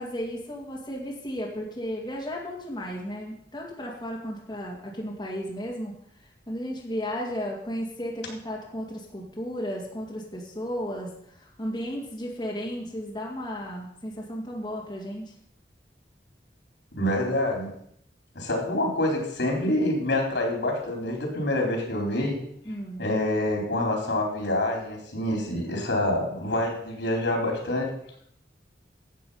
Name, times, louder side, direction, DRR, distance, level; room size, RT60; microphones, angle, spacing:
voice 1, 0.0-6.0 6.5-15.3 22.6-23.0, equal, 25° left, -3 dB, 2.3 m, -34 dB
voice 2, 16.9-17.7 18.4-22.4 23.0-27.9, left 1 dB, 80° left, 1 dB, 4.0 m, -26 dB
12.0 x 7.7 x 5.7 m, 0.69 s
head